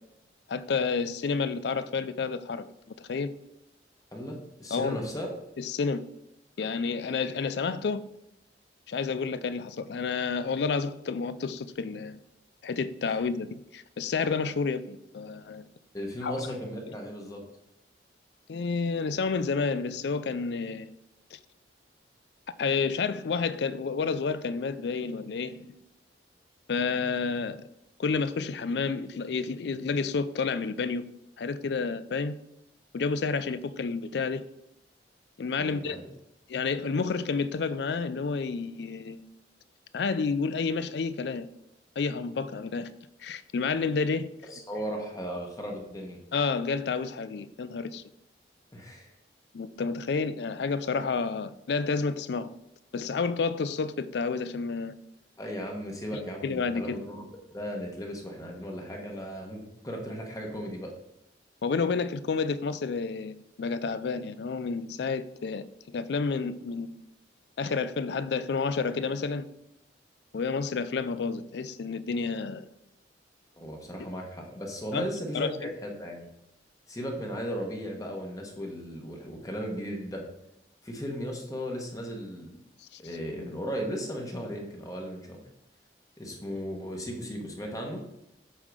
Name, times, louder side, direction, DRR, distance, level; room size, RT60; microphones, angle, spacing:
voice 1, 0.5-2.7 3.0-3.3 4.7-5.0 5.6-6.0 6.6-8.0 8.9-12.2 12.6-15.7 16.2-16.5 18.5-20.9 21.3-21.4 22.6-25.7 26.7-27.6 28.0-31.0 31.4-32.4 32.9-34.5 35.4-36.0 36.5-39.2 39.9-41.5 42.0-42.9 43.2-44.3 46.3-48.0 49.5-52.5 52.9-54.9 56.4-57.0 61.6-67.0 67.6-69.5 70.3-72.7 74.0-74.1 74.9-75.1 75.3-75.5 82.9-83.0, left 4 dB, 65° left, 0.4 m, -30 dB
voice 2, 4.1-5.3 15.9-17.4 35.6-36.1 44.5-46.2 48.7-49.1 55.4-60.9 73.6-76.3 76.9-80.2 80.8-82.5 83.0-85.4 86.2-88.0, equal, 20° left, 1.3 m, -36 dB
8.5 x 3.7 x 6.3 m
head